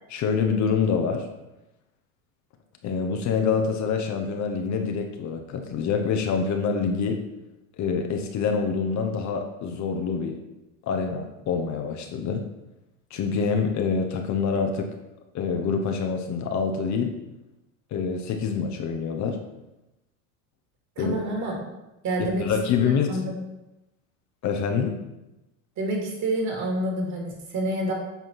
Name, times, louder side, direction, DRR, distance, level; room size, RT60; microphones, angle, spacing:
voice 1, 0.1-1.3 2.8-7.2 7.8-10.4 10.9-12.4 13.1-14.9 15.3-17.1 17.9-19.4 21.0-21.2 22.2-23.1 24.4-25.0, left 5 dB, 40° left, 4 dB, 1.1 m, -26 dB
voice 2, 21.0-21.5 22.0-22.5 22.8-23.3 25.8-27.9, right 1 dB, 40° right, 0 dB, 2.8 m, -28 dB
8.3 x 4.4 x 5.6 m, 0.97 s
supercardioid pair, 115°, 41 cm